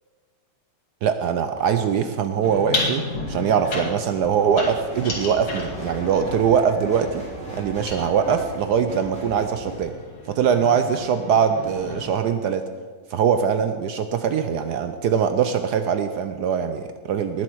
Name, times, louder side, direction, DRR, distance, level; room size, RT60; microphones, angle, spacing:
voice 1, 1.0-7.2 7.5-9.9 10.3-12.6 13.1-17.4, right 7 dB, 70° right, 8 dB, 1.0 m, -22 dB
sound 1, 2.4-8.5 9.3-12.1, left 2 dB, 70° left, 3.1 m, -33 dB
sound 2, 4.5-11.0 11.5-11.6, equal, 5° left, 3.0 m, -37 dB
19.5 x 7.5 x 4.6 m, 1.5 s
omnidirectional pair, 2.3 m